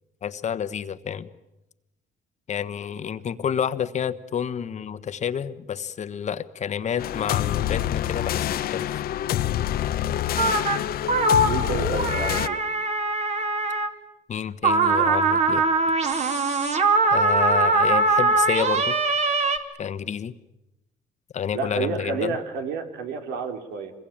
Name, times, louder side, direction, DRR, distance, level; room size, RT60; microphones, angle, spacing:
voice 1, 0.2-1.3 2.5-8.9 14.3-15.7 17.1-19.0 19.8-20.3 21.3-22.4, left 8 dB, 45° left, 13 dB, 1.2 m, -29 dB
sound 1, 7.0-12.5, left 12 dB, 60° left, 0.9 m, -26 dB
sound 2, 10.4-10.8 11.1-13.9 14.6-19.6, right 3 dB, 40° right, 2.5 m, -22 dB
voice 2, 11.4-12.6 21.5-23.9, right 5 dB, 90° right, 5 dB, 3.4 m, -30 dB
26.0 x 22.0 x 8.8 m, 0.95 s
cardioid pair, 110°, 17 cm